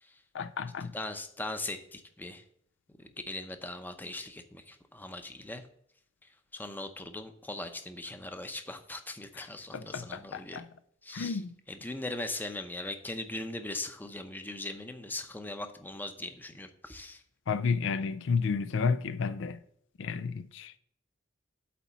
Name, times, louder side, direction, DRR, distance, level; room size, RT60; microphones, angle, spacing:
voice 1, 0.3-0.9 9.7-10.7 11.1-11.5 17.5-19.6 20.0-20.8, left 5 dB, 70° left, 0.4 m, -31 dB
voice 2, 0.9-2.4 3.0-5.6 6.2-10.6 11.0-11.4 11.7-17.2, left 2 dB, 10° left, 0.7 m, -40 dB
8.6 x 4.1 x 6.9 m
head